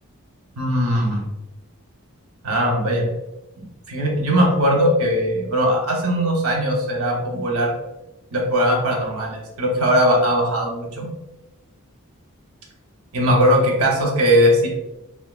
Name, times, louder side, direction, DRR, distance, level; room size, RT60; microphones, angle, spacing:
voice 1, 0.6-1.2 2.4-3.1 3.6-7.7 8.3-11.1 13.1-14.7, equal, 80° right, 0 dB, 0.7 m, -19 dB
3.5 x 2.3 x 2.3 m, 0.93 s
head